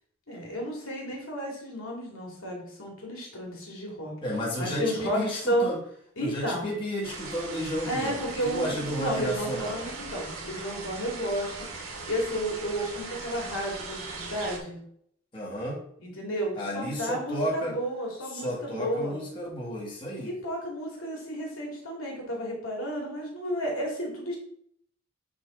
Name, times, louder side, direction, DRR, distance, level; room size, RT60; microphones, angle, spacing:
voice 1, 0.3-4.1 4.6-5.2 5.5-5.7 6.2-6.8 7.8-11.7 12.1-14.8 16.0-19.2 20.2-24.4, equal, 80° left, -1 dB, 2.4 m, -32 dB
voice 2, 4.2-5.8 6.2-9.9 15.3-15.8 16.6-17.8 18.3-20.4, equal, 25° left, -5 dB, 2.0 m, -32 dB
sound 1, 7.0-14.6, right 3 dB, 85° right, 1.9 m, -39 dB
9.6 x 3.7 x 3.8 m, 0.66 s
head